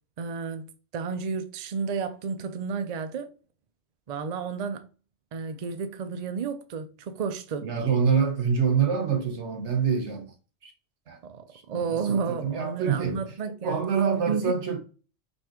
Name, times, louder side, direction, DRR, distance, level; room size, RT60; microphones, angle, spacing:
voice 1, 0.2-0.6 0.9-3.3 4.1-4.9 5.3-7.7 11.2-13.8 14.3-14.4, right 5 dB, 45° right, 0.6 m, -32 dB
voice 2, 7.6-10.3 10.6-10.7 11.1-11.2 11.5-13.2 13.6-14.8, right 6 dB, 90° right, 1.3 m, -26 dB
5.5 x 3.2 x 2.9 m
omnidirectional pair, 1.1 m